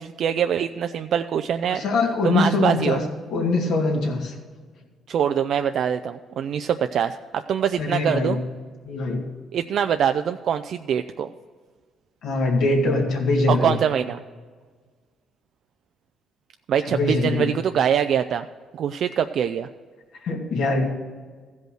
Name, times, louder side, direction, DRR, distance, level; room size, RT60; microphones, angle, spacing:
voice 1, 0.0-1.8 2.2-3.0 5.1-8.4 9.5-11.3 13.5-14.2 16.7-18.5 18.7-19.7, right 8 dB, 65° right, 8 dB, 0.3 m, -24 dB
voice 2, 1.7-3.0 3.3-4.4 7.8-8.4 8.8-9.3 12.2-13.8 16.9-17.5 20.2-20.9, left 3 dB, 75° left, 1 dB, 2.1 m, -22 dB
14.5 x 5.3 x 6.3 m, 1.5 s
cardioid pair, 100°, 0 cm